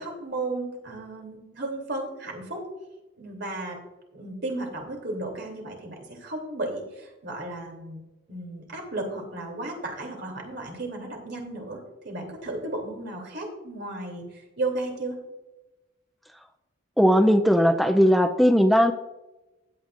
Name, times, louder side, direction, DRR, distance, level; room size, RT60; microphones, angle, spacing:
voice 1, 0.0-2.6 3.2-3.8 4.1-8.0 8.3-15.2, right 2 dB, 65° right, 1 dB, 2.9 m, -34 dB
voice 2, 17.0-18.9, equal, ahead, 6 dB, 0.5 m, -18 dB
15.5 x 9.1 x 2.5 m, 1.0 s
head